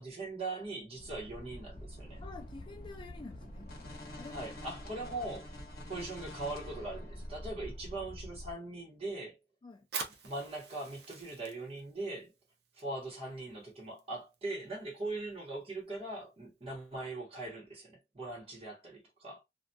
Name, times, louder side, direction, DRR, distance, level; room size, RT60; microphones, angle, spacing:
voice 1, 0.0-2.2 4.3-5.5 5.9-9.4 10.2-12.3 12.7-19.4, right 2 dB, 35° right, 1.1 m, -41 dB
sound 1, 1.0-8.5, left 1 dB, 60° left, 0.9 m, -46 dB
voice 2, 2.2-3.7 4.2-4.5 9.6-9.9, left 3 dB, 30° left, 0.4 m, -49 dB
Fire, 9.8-17.0, right 5 dB, 65° right, 0.6 m, -48 dB
2.6 x 2.3 x 2.2 m
head